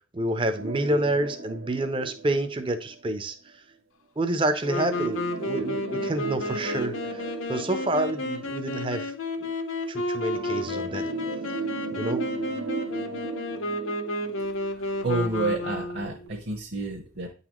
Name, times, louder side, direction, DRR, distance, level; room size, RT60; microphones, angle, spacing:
voice 1, 0.1-3.3 4.2-7.2 7.5-9.1 9.4-9.5 9.9-11.1 11.9-12.3, right 1 dB, 25° right, 9 dB, 0.5 m, -28 dB
sound 1, 0.5-3.2 4.7-9.1 10.3-15.2 15.6-15.7 16.3-16.4, right 4 dB, 90° right, 0.9 m, -36 dB
Wind instrument woodwind instrument, 4.6-16.3, left 2 dB, 80° left, 0.9 m, -32 dB
voice 2, 15.0-17.3, right 2 dB, 55° right, 1 dB, 1.0 m, -29 dB
9.2 x 4.0 x 3.0 m, 0.38 s
head